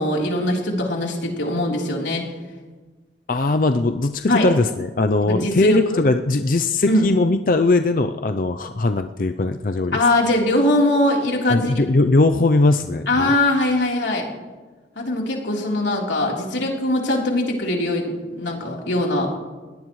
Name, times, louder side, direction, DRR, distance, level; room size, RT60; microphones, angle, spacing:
voice 1, 0.0-2.2 4.3-4.5 5.2-6.0 6.9-7.1 9.9-11.7 13.1-14.3 15.0-19.3, left 1 dB, 90° left, -1 dB, 3.8 m, -21 dB
voice 2, 3.3-10.0 11.5-13.3, left 2 dB, 50° left, 8 dB, 0.5 m, -20 dB
21.5 x 18.0 x 3.2 m, 1.3 s
head